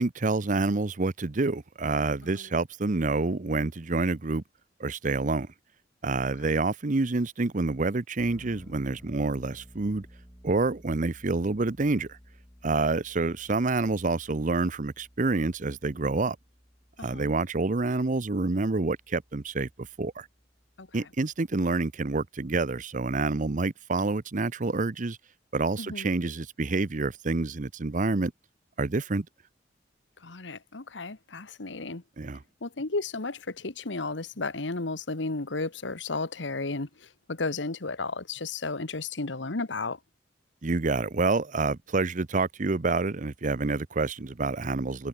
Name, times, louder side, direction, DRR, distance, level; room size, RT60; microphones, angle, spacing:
voice 1, 0.0-4.4 4.8-5.5 6.0-10.1 10.4-12.2 12.6-16.4 17.0-20.3 20.9-25.2 25.5-28.3 28.8-29.3 32.2-32.4 40.6-45.1, right 3 dB, 45° right, 0.8 m, -28 dB
sound 1, 8.2-21.6, equal, 15° left, 7.6 m, -54 dB
voice 2, 17.0-17.3 20.8-20.9 25.8-26.1 30.2-32.0 32.6-40.0, left 3 dB, 80° left, 1.5 m, -33 dB
head